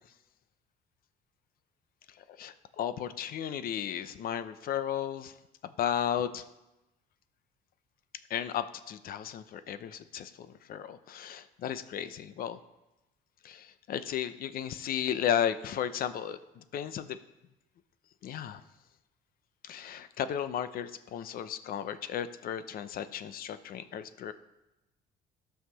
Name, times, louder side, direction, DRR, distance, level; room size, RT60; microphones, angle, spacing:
voice 1, 2.4-5.3 5.6-6.4 8.3-12.6 13.4-17.2 18.2-18.6 19.6-24.3, left 9 dB, 60° left, 13 dB, 0.7 m, -34 dB
14.0 x 5.8 x 5.6 m, 0.97 s
cardioid pair, 110°, 17 cm